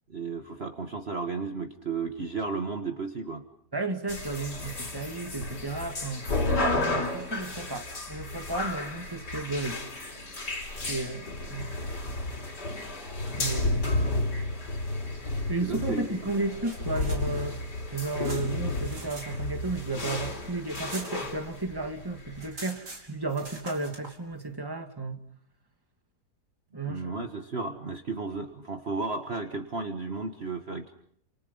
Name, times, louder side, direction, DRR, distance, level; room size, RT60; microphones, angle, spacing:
voice 1, 0.1-3.4 14.0-14.1 15.6-16.1 26.8-30.9, right 4 dB, 40° right, 1.7 m, -33 dB
voice 2, 3.7-6.2 6.7-9.8 10.9-11.7 13.4-13.9 15.5-17.6 17.9-25.2 26.7-27.1, right 2 dB, 15° right, 2.3 m, -33 dB
sound 1, 4.1-22.5, left 2 dB, 75° left, 5.0 m, -32 dB
sound 2, 16.6-19.3 19.6-21.7 22.0-22.1 22.3-24.2, right 2 dB, 75° right, 5.4 m, -45 dB
29.5 x 28.0 x 5.5 m
omnidirectional pair, 1.8 m